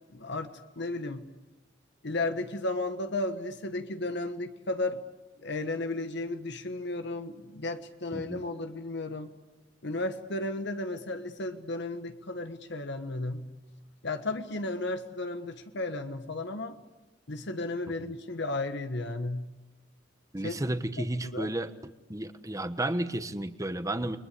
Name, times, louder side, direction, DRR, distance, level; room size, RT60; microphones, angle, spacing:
voice 1, 0.1-1.2 2.0-5.0 5.4-9.3 9.8-13.4 14.0-16.8 17.3-19.5 20.4-20.5 21.3-21.5, left 2 dB, 60° left, 8 dB, 1.4 m, -34 dB
voice 2, 8.1-8.5 18.0-18.1 20.3-21.7 22.1-24.2, right 1 dB, 15° right, 10 dB, 1.3 m, -32 dB
30.0 x 22.5 x 8.5 m, 1.1 s
head